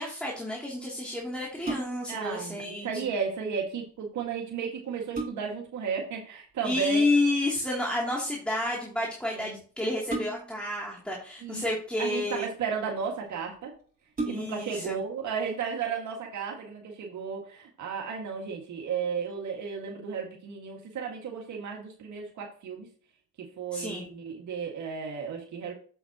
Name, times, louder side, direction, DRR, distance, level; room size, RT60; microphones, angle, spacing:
voice 1, 0.0-3.1 6.6-12.5 14.3-15.0 23.7-24.0, left 2 dB, 5° left, -4 dB, 2.8 m, -30 dB
sound 1, 1.4-2.2 4.2-4.3 4.8-5.7 7.3-7.6 10.1-10.7 11.7-12.4 13.1-13.2 13.5-13.6 14.1-14.8 15.3-15.4, right 2 dB, 30° right, 3.9 m, -36 dB
voice 2, 2.1-7.0 9.3-9.6 11.4-11.7 12.0-13.7 14.3-22.9 23.4-25.7, right 6 dB, 70° right, 0 dB, 2.0 m, -34 dB
7.8 x 7.7 x 2.9 m, 0.41 s
cardioid pair, 90°, 30 cm